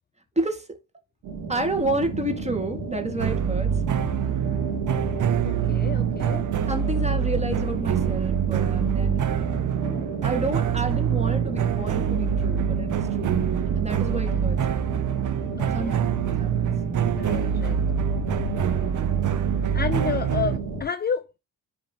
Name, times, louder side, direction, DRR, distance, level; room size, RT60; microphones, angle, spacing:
voice 1, 0.4-0.8 1.5-3.8 6.7-9.2 10.2-13.3 13.7-14.9 15.7-16.1 16.4-16.7, right 2 dB, 15° right, 2.1 m, -30 dB
sound 1, 1.2-20.8, right 4 dB, 85° right, 2.3 m, -32 dB
pan-Captain Hook Theme, 3.2-20.6, right 8 dB, 50° right, 0.8 m, -25 dB
voice 2, 5.4-6.5 15.6-16.0 17.2-17.8 19.7-21.3, left 7 dB, 25° left, 0.4 m, -30 dB
10.5 x 3.6 x 3.0 m
supercardioid pair, 70°, 40 cm